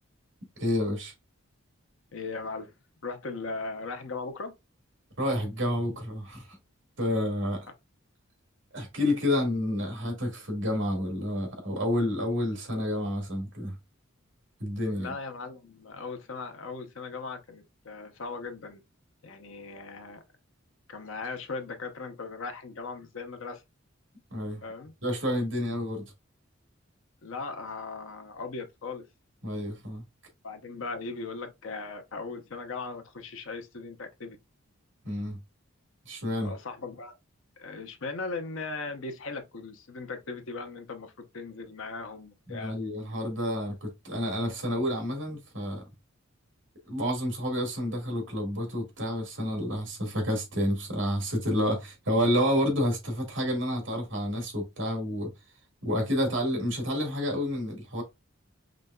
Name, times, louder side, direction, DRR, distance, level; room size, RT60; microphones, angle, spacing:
voice 1, 0.6-1.1 5.2-6.6 7.0-7.6 8.7-13.7 14.6-15.1 24.3-24.6 25.0-26.1 29.4-30.0 35.0-35.4 36.0-36.5 42.5-45.8 46.9-55.3 55.8-58.0, left 1 dB, 65° right, 1.8 m, -29 dB
voice 2, 2.1-2.7 3.0-4.5 14.9-18.8 19.2-20.2 20.9-23.6 24.6-24.9 27.2-29.0 30.4-34.4 36.4-37.2 37.6-42.8, left 4 dB, 75° left, 0.7 m, -38 dB
5.1 x 3.3 x 2.2 m
head